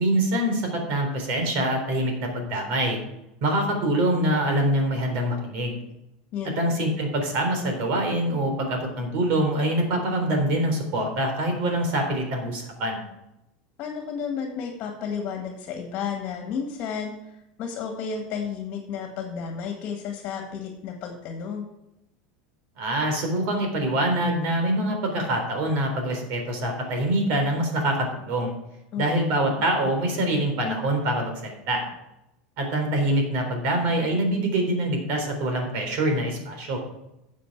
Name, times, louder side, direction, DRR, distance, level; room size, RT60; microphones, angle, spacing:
voice 1, 0.0-3.0 3.4-5.8 6.6-13.0 22.8-28.5 29.0-31.8 32.6-36.8, right 1 dB, 55° right, 3 dB, 3.7 m, -25 dB
voice 2, 6.3-6.7 13.8-21.7 28.9-29.1, left 6 dB, 40° left, 3 dB, 1.9 m, -32 dB
12.0 x 7.4 x 4.7 m, 0.87 s
supercardioid pair, 150°, 4 cm